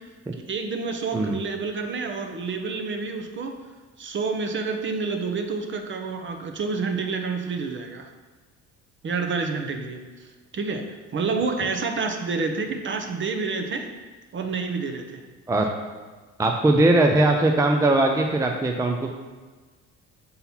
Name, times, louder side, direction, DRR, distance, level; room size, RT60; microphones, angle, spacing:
voice 1, 0.5-3.5 4.0-8.1 9.0-10.0 10.5-13.9 14.3-15.2, right 4 dB, 35° right, 5 dB, 0.8 m, -28 dB
voice 2, 16.4-19.1, right 2 dB, 10° right, 3 dB, 0.4 m, -20 dB
5.6 x 3.9 x 4.3 m, 1.4 s
supercardioid pair, 90°, 32 cm